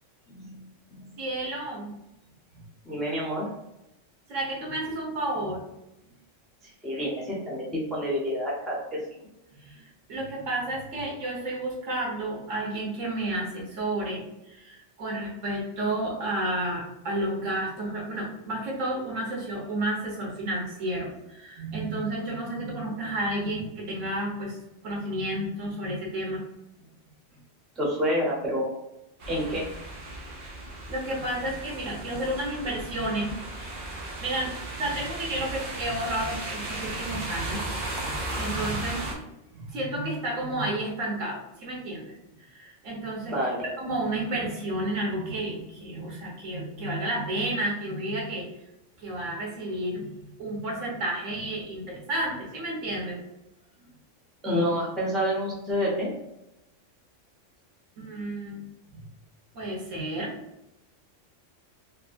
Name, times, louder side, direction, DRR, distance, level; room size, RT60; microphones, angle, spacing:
voice 1, 0.3-0.6 0.9-1.1 2.8-3.5 6.6-9.0 27.8-28.7 29.3-29.7 36.9-37.0 43.3-43.7 44.1-44.2 54.4-56.1, equal, ahead, -4 dB, 0.5 m, -28 dB
voice 2, 1.2-1.9 2.5-2.6 4.3-5.7 9.6-9.8 10.1-24.6 24.8-26.4 30.9-33.4 33.9-34.5 34.8-37.6 38.0-39.2 39.5-48.5 49.0-50.1 50.4-53.2 58.0-58.6 58.9-59.0 59.5-60.4, right 1 dB, 80° right, -2 dB, 1.3 m, -31 dB
sound 1, 29.2-39.1, right 2 dB, 50° right, 0.7 m, -35 dB
3.2 x 2.7 x 2.5 m, 0.90 s
omnidirectional pair, 1.3 m